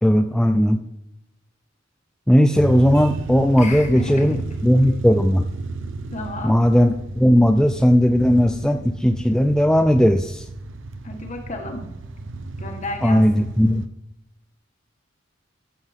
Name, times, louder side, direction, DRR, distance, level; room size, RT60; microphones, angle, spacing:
voice 1, 0.0-0.8 2.3-4.4 4.6-5.5 6.4-10.4 13.0-13.8, equal, 5° left, 6 dB, 0.4 m, -17 dB
sound 1, 2.5-13.9, right 2 dB, 70° right, 0.8 m, -33 dB
voice 2, 3.6-4.4 6.1-6.6 11.0-11.9 12.6-13.5, left 2 dB, 35° left, 3 dB, 1.7 m, -32 dB
14.5 x 7.2 x 3.6 m, 0.89 s
head